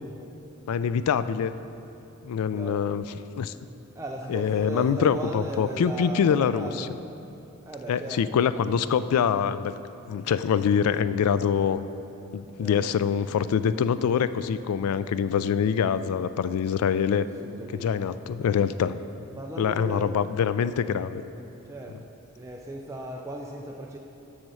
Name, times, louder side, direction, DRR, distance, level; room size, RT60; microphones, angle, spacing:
voice 1, 0.7-1.5 2.2-3.5 4.3-6.9 7.9-9.7 10.1-11.8 12.3-17.3 17.7-18.9 19.6-21.2, left 7 dB, 90° left, 14 dB, 0.3 m, -25 dB
voice 2, 2.5-2.9 4.0-7.0 7.7-8.3 12.6-12.9 17.4-18.0 19.3-20.2 21.7-22.0 22.3-24.0, right 1 dB, 15° right, 0 dB, 0.4 m, -36 dB
7.7 x 6.4 x 5.5 m, 2.8 s
head